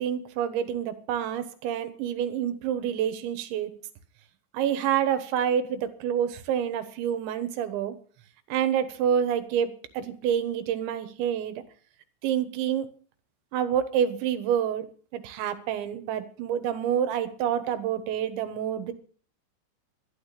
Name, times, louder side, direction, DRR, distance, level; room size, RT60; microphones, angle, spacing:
voice 1, 0.0-3.7 4.5-8.0 8.5-11.6 12.2-12.9 13.5-14.9 15.1-18.9, right 9 dB, 75° right, 10 dB, 3.4 m, -28 dB
12.5 x 11.5 x 6.7 m, 0.44 s
omnidirectional pair, 5.6 m